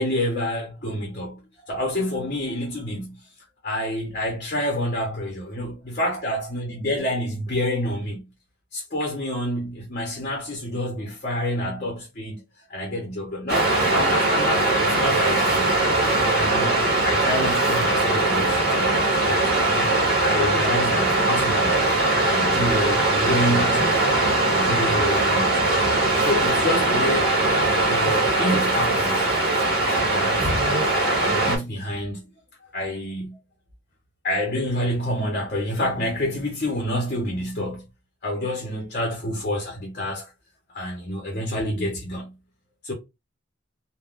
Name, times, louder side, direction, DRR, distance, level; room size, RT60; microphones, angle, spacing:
voice 1, 0.0-3.2 3.6-8.3 8.7-12.4 12.7-15.8 16.3-21.8 22.1-24.1 24.5-25.9 26.2-27.4 27.9-29.3 29.9-32.3 32.7-33.4 34.2-37.8 38.2-40.3 40.7-42.3 42.8-42.9, left 1 dB, 40° left, 0.8 m, -28 dB
Waves surf, 13.5-31.6, right 2 dB, 50° right, 1.3 m, -21 dB
3.5 x 2.2 x 2.4 m
head